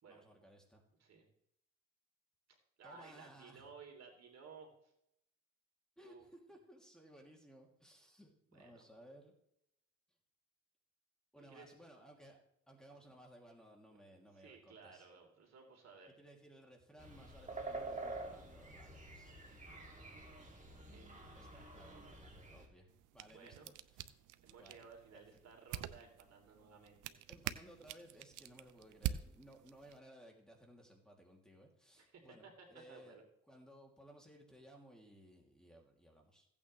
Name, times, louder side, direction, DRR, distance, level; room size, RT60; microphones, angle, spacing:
voice 1, 0.1-0.8 2.8-3.7 6.0-9.3 11.3-12.4 12.7-15.1 16.2-19.7 21.4-22.9 23.1-24.1 24.5-24.8 25.1-25.3 27.3-33.2 33.5-36.5, equal, ahead, 0 dB, 2.8 m, -60 dB
voice 2, 2.5-4.9 6.0-6.2 8.5-8.8 11.4-11.7 14.3-16.1 20.7-22.1 23.2-23.7 24.4-27.2 32.0-33.2, right 5 dB, 60° right, 2 dB, 3.2 m, -58 dB
sound 1, 17.0-22.7, right 2 dB, 25° right, 2.7 m, -48 dB
sound 2, 22.9-30.0, right 12 dB, 85° right, 0.7 m, -46 dB
16.0 x 8.7 x 3.3 m, 0.77 s
cardioid pair, 90°, 30 cm